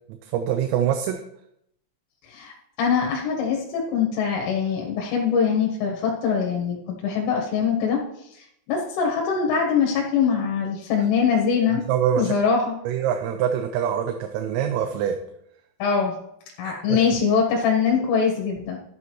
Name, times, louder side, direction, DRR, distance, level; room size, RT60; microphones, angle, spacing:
voice 1, 0.2-1.2 11.9-12.3 12.9-15.2 16.6-17.0, right 9 dB, 85° right, 6 dB, 3.4 m, -24 dB
voice 2, 2.8-8.0 8.3-11.8 12.2-12.8 15.8-16.1 16.6-18.8, left 6 dB, 75° left, -1 dB, 3.7 m, -23 dB
12.5 x 8.6 x 3.1 m, 0.77 s
omnidirectional pair, 5.9 m